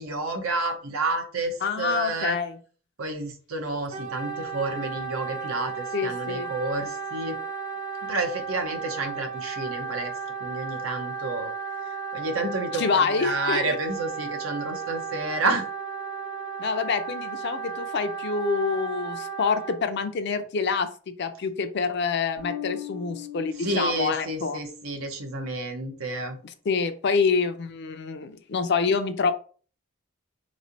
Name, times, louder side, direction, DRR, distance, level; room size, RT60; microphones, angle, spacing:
voice 1, 0.0-2.4 3.0-7.4 8.0-10.1 10.4-11.5 12.1-15.6 23.6-26.4, right 2 dB, 85° right, 4 dB, 0.8 m, -30 dB
voice 2, 1.6-2.5 5.9-6.5 12.7-13.8 16.6-24.6 26.7-29.3, left 5 dB, 55° left, 9 dB, 0.4 m, -26 dB
Wind instrument woodwind instrument, 3.9-19.8, right 5 dB, 35° right, 0.6 m, -34 dB
Bass guitar, 22.4-25.0, left 12 dB, 55° right, 1.0 m, -39 dB
3.6 x 3.1 x 2.6 m, 0.40 s
head